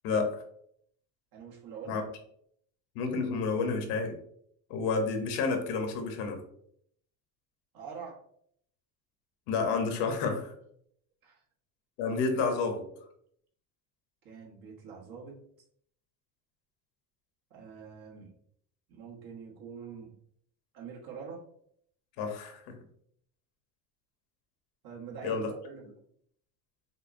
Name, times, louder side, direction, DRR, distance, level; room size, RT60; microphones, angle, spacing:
voice 1, 0.0-0.4 1.9-2.0 2.9-4.2 4.7-6.4 9.5-10.5 12.0-12.8 22.2-22.8 25.2-25.5, left 4 dB, 80° left, 4 dB, 1.0 m, -30 dB
voice 2, 1.3-2.0 7.7-8.2 11.2-11.4 12.0-12.2 14.2-15.4 17.5-18.3 18.9-20.1 20.7-21.5 24.8-25.9, right 6 dB, 65° right, -1 dB, 1.3 m, -45 dB
5.5 x 2.1 x 2.6 m, 0.67 s
cardioid pair, 110°, 40 cm